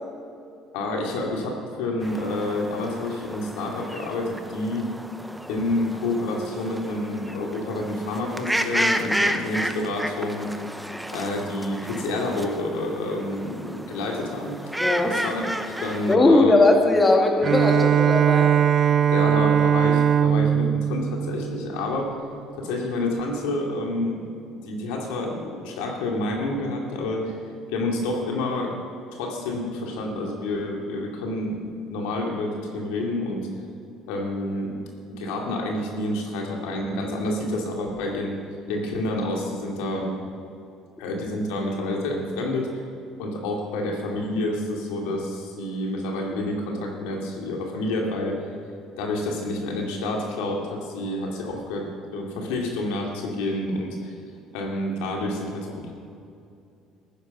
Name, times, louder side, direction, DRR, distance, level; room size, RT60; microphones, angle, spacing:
voice 1, 0.7-4.9 5.5-10.5 11.1-14.6 15.0-16.5 19.1-22.1 22.6-24.2 24.6-27.4 27.7-28.8 29.1-33.5 34.1-34.7 35.1-38.4 38.7-40.2 41.0-42.8 43.2-48.4 49.0-51.9 52.1-54.1 54.5-55.9, left 2 dB, 90° left, 0 dB, 2.4 m, -28 dB
sound 1, 2.0-16.2, equal, 5° right, 0.8 m, -31 dB
voice 2, 14.8-15.2 16.1-18.5, left 2 dB, 20° left, 3 dB, 2.0 m, -19 dB
Bowed string instrument, 17.4-22.1, right 8 dB, 50° right, 0.4 m, -20 dB
14.0 x 9.8 x 5.5 m, 2.6 s
supercardioid pair, 90°, 0 cm